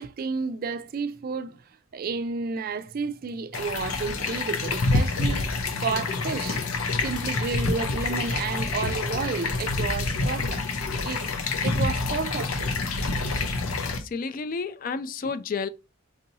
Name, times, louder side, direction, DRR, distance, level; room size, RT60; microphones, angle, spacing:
voice 1, 0.0-1.6 1.9-5.4 5.8-6.6 7.0-10.6 11.0-11.2 11.6-12.7 15.2-15.3, right 5 dB, 45° right, 0.3 m, -31 dB
sound 1, 3.5-14.0, left 3 dB, 90° left, 0.7 m, -27 dB
voice 2, 14.0-15.7, left 4 dB, 40° left, 0.3 m, -31 dB
5.3 x 2.8 x 2.6 m
head